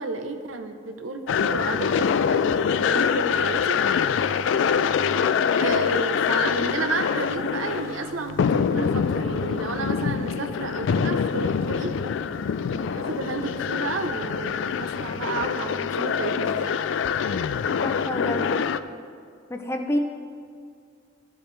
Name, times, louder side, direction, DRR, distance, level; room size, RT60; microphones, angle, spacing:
voice 1, 0.0-3.8 5.6-12.2 12.6-16.8, right 3 dB, 90° right, 6 dB, 0.8 m, -32 dB
sound 1, 1.3-18.8, left 6 dB, 70° left, 0.3 m, -25 dB
voice 2, 17.8-18.5 19.5-20.0, equal, 15° left, 5 dB, 0.5 m, -28 dB
14.0 x 7.2 x 3.3 m, 2.2 s
head